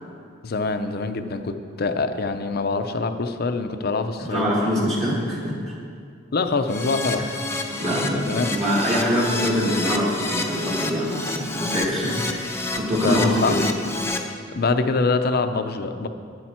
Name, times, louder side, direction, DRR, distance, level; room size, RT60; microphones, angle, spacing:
voice 1, 0.4-4.5 6.3-7.2 7.9-8.5 12.3-12.4 12.9-13.6 14.5-16.1, left 3 dB, 55° left, 8 dB, 0.6 m, -25 dB
voice 2, 4.2-5.8 7.2-7.3 7.8-12.5 12.7-13.6, equal, 35° right, -6 dB, 1.7 m, -24 dB
Keyboard (musical), 6.7-14.2, left 2 dB, 15° left, 0.8 m, -29 dB
11.5 x 10.0 x 4.4 m, 2.2 s
head